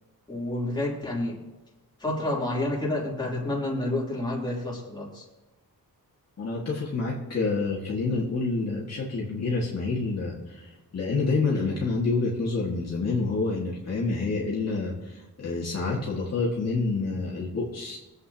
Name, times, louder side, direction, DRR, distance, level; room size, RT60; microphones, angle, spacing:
voice 1, 0.3-1.4 2.0-5.2, left 1 dB, 10° left, -5 dB, 3.4 m, -29 dB
voice 2, 6.4-18.0, left 3 dB, 45° left, -4 dB, 2.1 m, -28 dB
24.5 x 8.2 x 2.9 m, 1.1 s
wide cardioid pair, 165°, 35 cm